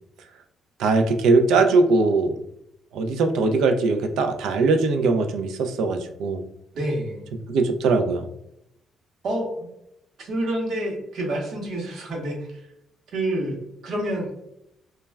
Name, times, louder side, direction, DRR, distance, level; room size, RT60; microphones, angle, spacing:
voice 1, 0.8-2.3 2.9-6.4 7.5-8.3, right 3 dB, 85° right, 7 dB, 0.3 m, -20 dB
voice 2, 6.7-7.3 9.2-9.7 10.2-12.7 13.1-14.3, right 1 dB, 70° right, 0 dB, 0.8 m, -28 dB
2.1 x 2.1 x 3.3 m, 0.79 s
cardioid pair, 90°, 0 cm